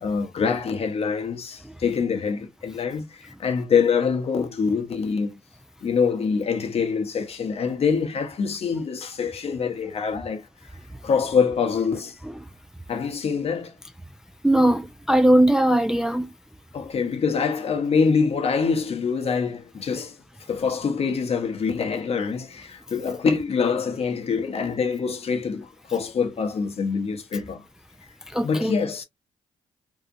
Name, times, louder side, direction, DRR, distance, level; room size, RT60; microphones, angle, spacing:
voice 1, 0.0-5.4 5.8-10.4 11.0-12.2 12.9-13.7 16.7-20.2 20.5-27.6 28.4-29.0, left 5 dB, 50° left, 0.8 m, -25 dB
voice 2, 14.4-16.3 28.3-28.7, right 1 dB, 5° right, 0.4 m, -19 dB
2.7 x 2.4 x 2.4 m
supercardioid pair, 55°, 13 cm